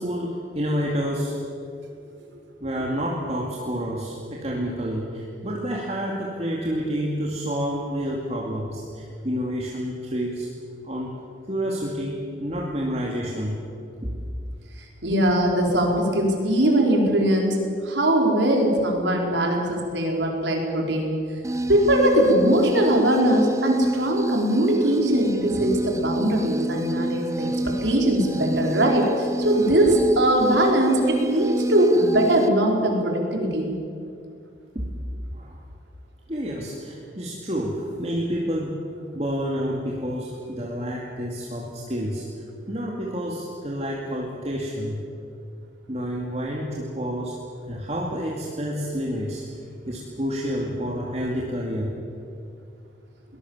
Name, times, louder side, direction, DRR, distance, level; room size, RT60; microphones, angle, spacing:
voice 1, 0.0-1.3 2.6-10.5 10.8-11.1 11.5-13.6 14.0-14.2 34.7-34.9 35.3-35.6 36.3-38.7 39.1-42.2 42.7-45.0 45.9-47.4 47.7-49.4 49.9-51.9, equal, 35° right, -2 dB, 2.5 m, -29 dB
voice 2, 15.0-17.6 17.8-21.1 21.7-33.8, right 1 dB, 80° right, 0 dB, 4.9 m, -21 dB
sound 1, 21.4-32.5, right 1 dB, 15° right, 0.8 m, -29 dB
22.5 x 20.5 x 7.4 m, 2.4 s
head